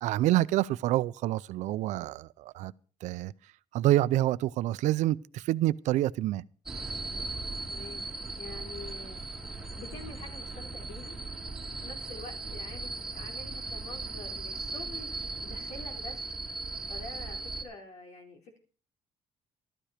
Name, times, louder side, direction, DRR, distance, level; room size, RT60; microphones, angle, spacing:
voice 1, 0.0-2.7 3.0-3.3 3.7-6.4, right 15 dB, 85° right, 0.5 m, -27 dB
sound 1, 6.7-17.6, right 3 dB, 5° right, 2.4 m, -38 dB
voice 2, 7.7-8.0 8.4-9.2 9.8-11.2 11.8-16.3 16.9-18.6, left 3 dB, 75° left, 4.1 m, -46 dB
13.0 x 13.0 x 5.0 m
cardioid pair, 165°, 12 cm